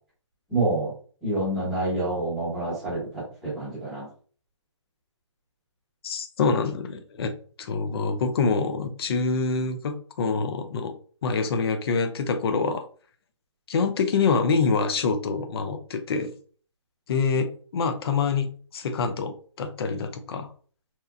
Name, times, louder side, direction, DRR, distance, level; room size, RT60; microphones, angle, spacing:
voice 1, 0.5-0.9 1.2-4.1, right 2 dB, ahead, -9 dB, 1.0 m, -27 dB
voice 2, 6.0-10.9 11.2-12.8 13.7-16.3 17.1-20.5, left 4 dB, 50° left, 8 dB, 0.4 m, -26 dB
2.8 x 2.0 x 2.3 m, 0.43 s
hypercardioid pair, 155°, 16 cm